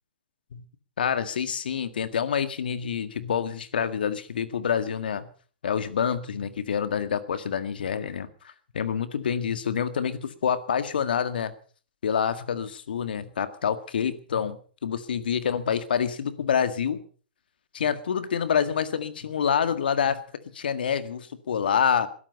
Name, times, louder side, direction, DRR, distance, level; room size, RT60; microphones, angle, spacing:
voice 1, 1.0-5.3 5.6-8.3 8.7-11.5 12.0-17.0 17.7-20.2 20.5-22.1, left 7 dB, 70° left, 11 dB, 1.8 m, -27 dB
21.0 x 12.0 x 5.5 m, 0.43 s
hypercardioid pair, 120°, 5 cm